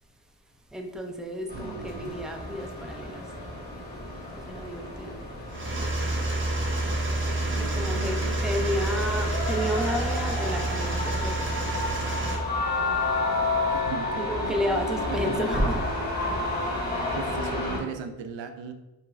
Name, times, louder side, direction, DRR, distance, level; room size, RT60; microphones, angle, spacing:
voice 1, 0.7-3.4 4.3-5.2 7.7-12.2 14.2-16.1, equal, ahead, 2 dB, 0.5 m, -32 dB
sound 1, 1.5-17.8, left 2 dB, 20° left, 1.4 m, -31 dB
voice 2, 1.5-2.1 7.5-8.6 13.7-14.6 15.3-15.4 17.1-18.7, right 6 dB, 75° right, 7 dB, 0.5 m, -38 dB
sound 2, 5.5-12.4, right 2 dB, 25° right, 1.0 m, -28 dB
4.5 x 3.2 x 2.5 m, 1.0 s
cardioid pair, 55°, 45 cm